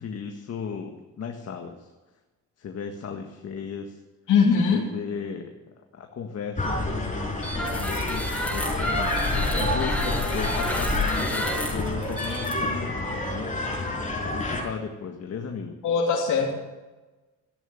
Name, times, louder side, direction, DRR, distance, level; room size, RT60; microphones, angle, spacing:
voice 1, 0.0-1.9 2.6-4.0 4.7-5.5 5.9-7.4 7.7-13.5 14.2-15.8, left 6 dB, 55° left, 4 dB, 1.8 m, -36 dB
voice 2, 4.3-4.8 15.8-16.5, left 5 dB, 80° left, -2 dB, 3.1 m, -21 dB
sound 1, 6.6-14.6, left 1 dB, 25° left, 5.6 m, -29 dB
sound 2, 7.4-13.3, left 1 dB, 5° left, 6.6 m, -29 dB
15.5 x 10.5 x 7.2 m, 1.2 s
cardioid pair, 90°, 30 cm